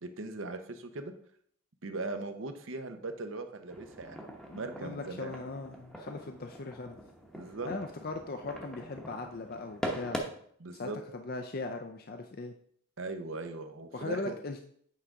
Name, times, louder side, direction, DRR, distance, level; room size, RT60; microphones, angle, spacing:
voice 1, 0.0-1.1 1.8-5.3 7.3-7.7 10.6-11.0 13.0-14.4, right 3 dB, 65° right, 7 dB, 0.8 m, -39 dB
sound 1, 3.7-10.2, equal, 5° left, 0.9 m, -43 dB
voice 2, 4.5-7.0 7.6-10.3 10.7-12.5 13.9-14.6, left 3 dB, 45° left, 5 dB, 0.5 m, -39 dB
8.6 x 3.8 x 4.7 m, 0.62 s
head